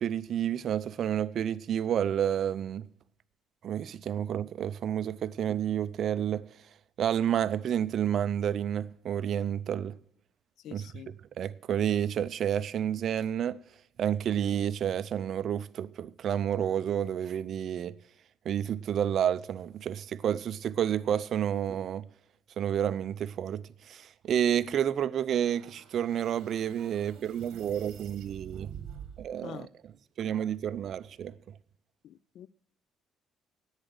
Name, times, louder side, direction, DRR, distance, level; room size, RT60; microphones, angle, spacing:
voice 1, 0.0-2.9 3.6-6.4 7.0-9.9 10.7-10.9 11.4-13.6 14.0-17.9 18.4-22.1 22.6-28.7 29.2-29.7 30.2-31.3, right 9 dB, 55° right, 0.5 m, -30 dB
voice 2, 10.6-11.2 29.4-29.7 32.0-32.5, left 11 dB, 65° left, 0.4 m, -45 dB
sound 1, 25.3-29.3, right 9 dB, 70° right, 1.4 m, -47 dB
10.5 x 9.0 x 7.8 m
cardioid pair, 120°, 0 cm